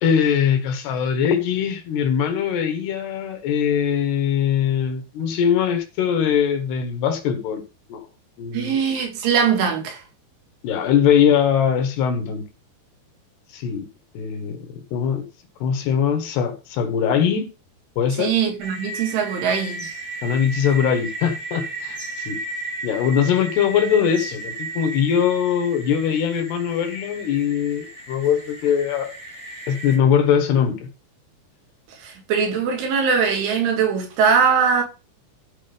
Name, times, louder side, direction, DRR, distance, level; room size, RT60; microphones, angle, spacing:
voice 1, 0.0-7.6 7.9-8.0 8.4-8.7 10.6-12.5 13.5-13.9 14.1-15.2 15.6-17.5 18.0-18.3 20.2-22.4 22.8-29.1 29.7-30.9, left 8 dB, 70° left, 3.0 m, -21 dB
voice 2, 8.5-10.0 18.2-19.9 31.9-34.8, right 6 dB, 80° right, 4.8 m, -21 dB
sound 1, 18.6-30.0, right 2 dB, 35° right, 1.1 m, -34 dB
13.5 x 5.0 x 5.1 m
omnidirectional pair, 5.4 m